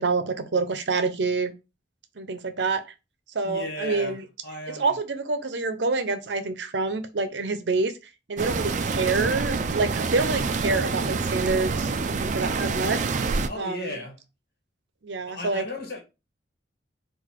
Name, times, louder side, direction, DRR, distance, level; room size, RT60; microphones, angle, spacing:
voice 1, 0.0-1.5 2.2-2.8 3.3-4.2 4.7-13.1 13.6-14.0 15.0-15.6, right 3 dB, 75° right, 0.7 m, -27 dB
voice 2, 3.4-4.2 4.4-5.0 13.5-14.2 15.3-16.0, left 1 dB, 60° left, 1.5 m, -35 dB
sound 1, 8.4-13.5, right 4 dB, 45° right, 0.4 m, -27 dB
4.0 x 2.5 x 4.5 m
head